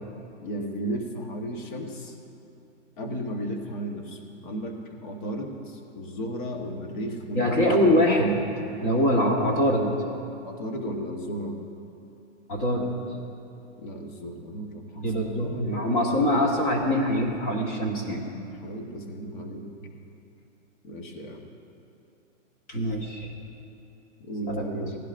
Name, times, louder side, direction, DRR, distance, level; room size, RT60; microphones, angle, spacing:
voice 1, 0.4-2.1 3.0-7.5 9.4-9.5 10.4-11.6 13.8-15.9 18.6-19.9 20.8-21.5 24.2-25.0, equal, 40° left, 2 dB, 1.3 m, -35 dB
voice 2, 7.3-8.4 8.8-9.9 12.5-12.9 15.0-18.2 22.7-23.3 24.5-24.8, equal, 20° left, 0 dB, 1.3 m, -23 dB
18.5 x 16.0 x 2.6 m, 2.8 s
hypercardioid pair, 170°, 38 cm